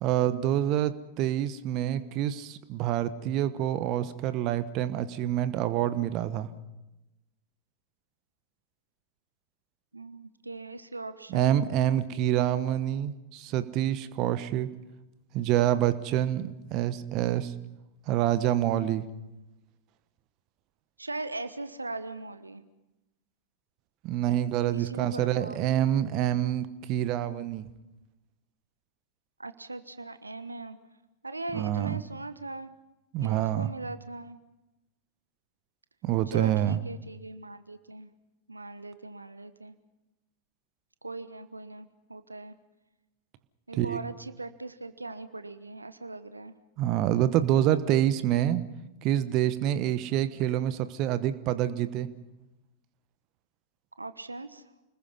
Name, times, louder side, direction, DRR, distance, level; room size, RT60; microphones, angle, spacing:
voice 1, 0.0-6.5 11.3-14.7 15.3-17.5 18.1-19.0 24.0-27.7 31.5-32.0 33.1-33.7 36.0-36.8 43.7-44.0 46.8-48.6 49.0-52.1, right 12 dB, 40° right, 13 dB, 1.1 m, -27 dB
voice 2, 9.9-11.5 21.0-22.6 24.7-25.6 29.4-30.8 31.2-32.7 33.2-34.4 36.3-38.1 38.5-39.8 41.0-42.5 43.7-46.5 54.0-54.6, right 2 dB, 80° right, 12 dB, 1.1 m, -40 dB
29.5 x 20.5 x 5.5 m, 0.98 s
figure-of-eight pair, 90°, 0 cm